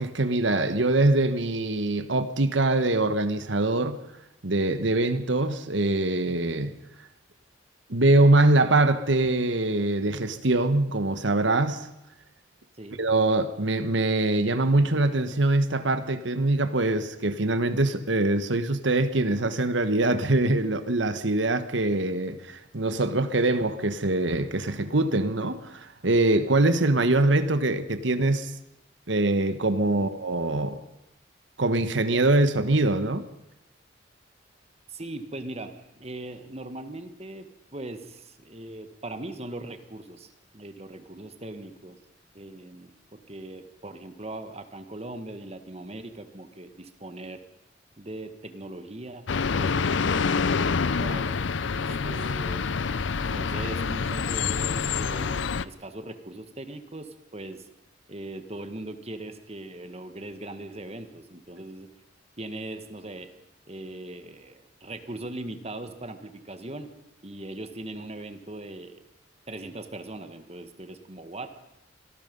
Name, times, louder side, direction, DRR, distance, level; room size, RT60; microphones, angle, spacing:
voice 1, 0.0-4.0 4.4-6.7 7.9-11.9 13.0-28.5 29.1-30.8 31.6-33.3, right 2 dB, 80° right, 1.4 m, -23 dB
voice 2, 34.9-37.5 37.7-42.0 42.3-47.4 48.0-49.3 49.6-51.4 51.7-52.7 53.2-57.7 58.1-61.9 62.4-63.3 63.6-66.9 67.2-69.0 69.5-71.7, right 1 dB, 35° right, 1.7 m, -40 dB
sound 1, 49.3-55.7, left 5 dB, 80° left, 0.6 m, -27 dB
26.0 x 18.5 x 5.5 m
head